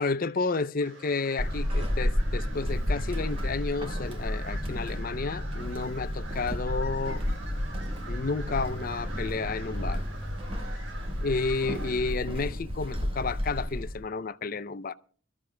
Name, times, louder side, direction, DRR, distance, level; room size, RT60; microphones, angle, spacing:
voice 1, 0.0-7.2 8.1-10.0 11.2-14.9, left 4 dB, 45° left, 0.5 m, -31 dB
sound 1, 0.8-12.1, right 3 dB, 70° right, 4.9 m, -46 dB
Walk footsteps / Squeak, 1.4-14.0, equal, 25° right, 1.5 m, -31 dB
29.5 x 13.5 x 2.2 m
head